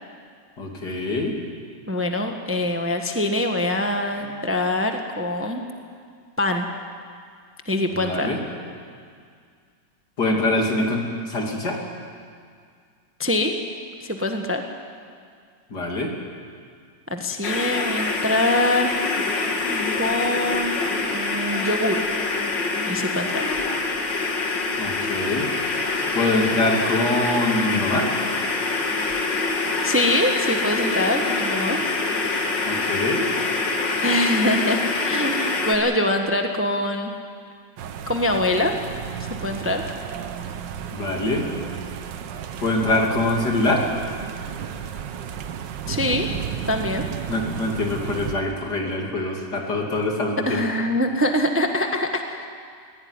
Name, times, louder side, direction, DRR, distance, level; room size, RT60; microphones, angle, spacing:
voice 1, 0.6-1.3 8.0-8.4 10.2-11.8 15.7-16.1 24.8-25.5 26.1-28.1 32.7-33.3 40.9-41.5 42.6-43.8 47.3-50.7, left 2 dB, 65° left, 0 dB, 3.4 m, -24 dB
voice 2, 1.9-5.6 6.4-6.7 7.7-8.3 13.2-13.5 14.0-14.6 17.1-19.1 19.9-20.8 21.1-22.0 22.8-23.5 29.8-31.8 34.0-37.1 38.1-38.7 39.2-39.8 45.9-46.3 46.7-47.1 50.5-52.5, left 1 dB, 10° right, 4 dB, 1.1 m, -24 dB
sound 1, 17.4-35.8, left 3 dB, 85° left, 2.7 m, -25 dB
sound 2, 37.8-48.4, right 8 dB, 90° right, 1.6 m, -33 dB
21.0 x 16.5 x 9.7 m, 2.1 s
omnidirectional pair, 1.9 m